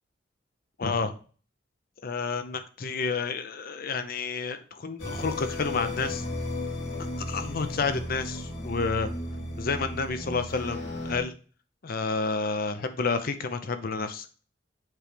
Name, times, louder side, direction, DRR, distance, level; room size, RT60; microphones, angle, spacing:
voice 1, 0.8-1.1 2.0-6.2 7.0-9.1 9.6-11.3 11.8-14.3, left 4 dB, 50° left, 9 dB, 0.6 m, -30 dB
sound 1, 5.0-11.2, left 1 dB, 70° left, 2.9 m, -34 dB
7.5 x 3.2 x 5.1 m, 0.39 s
head